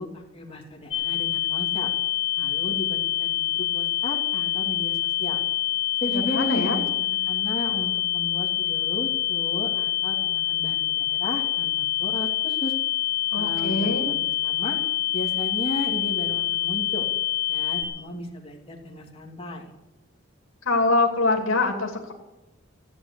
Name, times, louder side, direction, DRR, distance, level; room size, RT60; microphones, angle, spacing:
voice 1, 0.0-1.9 2.4-5.4 6.0-12.7 13.4-14.8 15.1-17.1 17.5-19.7, left 2 dB, 30° left, -1 dB, 2.8 m, -35 dB
sound 1, 0.9-17.8, left 14 dB, 60° left, 2.8 m, -26 dB
voice 2, 6.1-6.8 13.3-14.1 20.6-22.1, left 3 dB, 80° left, 2 dB, 2.8 m, -24 dB
15.0 x 9.3 x 8.4 m, 0.96 s
head